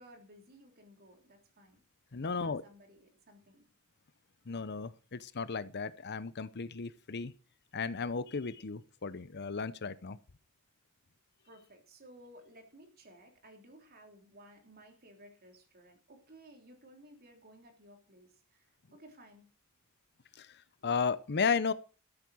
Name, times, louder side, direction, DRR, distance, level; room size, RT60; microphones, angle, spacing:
voice 1, 0.0-1.8 2.2-3.6 11.4-19.5, right 1 dB, 45° right, 3.4 m, -57 dB
voice 2, 2.1-2.6 4.5-7.3 7.7-10.2 20.4-20.5 20.8-21.7, left 5 dB, 50° left, 0.8 m, -34 dB
13.5 x 8.4 x 6.2 m
head